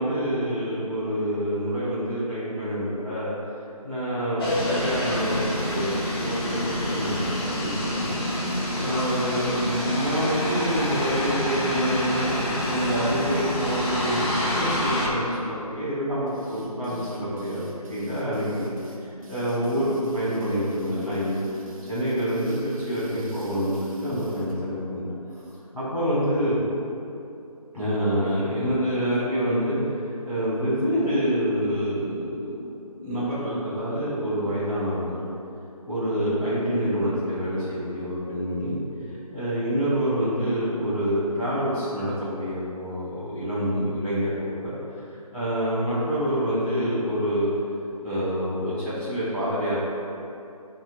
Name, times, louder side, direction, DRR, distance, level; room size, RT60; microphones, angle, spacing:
voice 1, 0.0-3.3 3.8-8.1 8.8-12.3 12.6-18.7 19.3-21.4 21.9-25.2 25.7-26.6 27.7-30.0 30.2-32.7 33.0-35.3 35.9-38.8 39.3-44.7 45.3-47.5 48.0-49.8, equal, ahead, -29 dB, 0.5 m, -27 dB
sound 1, 4.4-15.1, left 1 dB, 40° left, 1.2 m, -27 dB
sound 2, 16.3-24.6, left 1 dB, 60° right, 1.1 m, -43 dB
10.5 x 3.8 x 2.4 m, 2.7 s
figure-of-eight pair, 165°, 20 cm